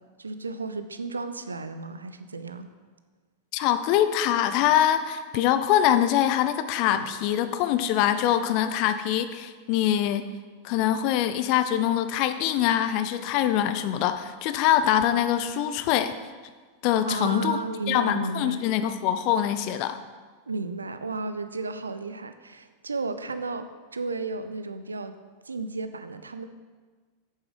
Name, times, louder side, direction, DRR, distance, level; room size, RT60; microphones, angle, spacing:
voice 1, 0.2-2.7 6.9-7.0 17.1-18.6 20.5-25.2 25.4-26.5, right 3 dB, 75° right, 10 dB, 0.6 m, -33 dB
voice 2, 3.5-10.3 10.6-16.1 16.8-17.6 17.9-20.0, left 11 dB, 45° left, 11 dB, 0.6 m, -24 dB
8.3 x 7.1 x 5.0 m, 1.4 s
figure-of-eight pair, 90°, 0 cm